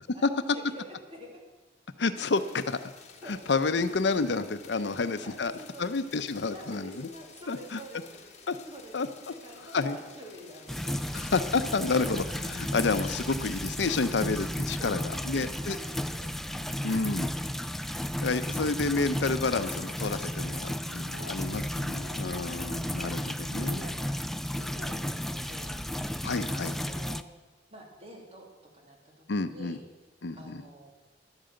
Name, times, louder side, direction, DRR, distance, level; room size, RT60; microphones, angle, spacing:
voice 1, 0.1-1.4 3.2-3.4 4.7-4.9 5.2-5.8 6.5-8.2 8.7-9.0 9.4-11.0 11.8-12.2 14.7-17.0 21.1-22.3 22.9-23.1 23.6-24.2 24.5-26.0 26.5-27.2 27.7-28.5 28.7-29.8 30.3-30.9, right 1 dB, 35° right, 0 dB, 2.7 m, -48 dB
voice 2, 2.0-2.9 3.3-5.5 5.8-7.1 7.5-7.8 8.5-8.6 8.9-9.1 9.7-10.0 11.1-15.8 16.8-17.3 18.2-23.9 26.2-26.7 29.3-29.8 30.2-30.6, left 3 dB, 70° left, 11 dB, 0.7 m, -29 dB
sound 1, 2.1-14.5, left 5 dB, 40° left, 1.5 m, -52 dB
sound 2, 10.7-27.2, equal, ahead, 0.3 m, -34 dB
11.5 x 8.9 x 7.8 m, 1.2 s
head